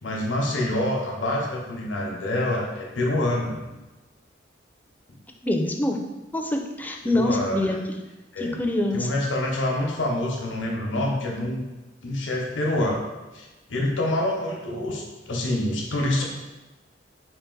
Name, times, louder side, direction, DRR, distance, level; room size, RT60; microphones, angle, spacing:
voice 1, 0.0-3.6 7.1-7.7 8.3-8.6 8.9-11.7 12.0-13.0 13.3-16.2, left 1 dB, 85° left, -1 dB, 0.8 m, -26 dB
voice 2, 5.4-6.0 6.3-8.0 8.4-9.1, left 1 dB, 10° left, 3 dB, 0.4 m, -25 dB
3.9 x 2.5 x 3.8 m, 1.1 s
head